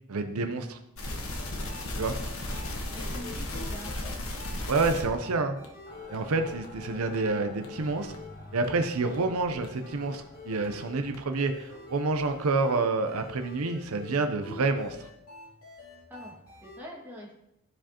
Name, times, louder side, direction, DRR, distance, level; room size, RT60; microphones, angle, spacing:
voice 1, 0.1-0.8 2.0-2.2 4.7-5.6 6.1-8.1 8.5-15.0, right 3 dB, 85° right, 7 dB, 0.6 m, -28 dB
sound 1, 1.0-5.2 5.6-5.7 6.1-6.2 6.6-6.7 7.1-7.2 7.6-7.7 8.1-8.2 8.6-8.7 9.1-9.2 9.6-9.7 10.1-10.2 10.6-10.7 11.1-11.2, left 1 dB, 70° left, 1.3 m, -35 dB
sound 2, 1.4-16.8, left 4 dB, 85° left, 2.9 m, -47 dB
voice 2, 2.9-4.1 16.1-16.4 16.6-17.3, equal, 10° right, -4 dB, 1.9 m, -44 dB
Mechanical fan, 5.8-12.6, left 1 dB, 45° left, 2.2 m, -50 dB
12.5 x 4.9 x 2.9 m, 0.82 s
head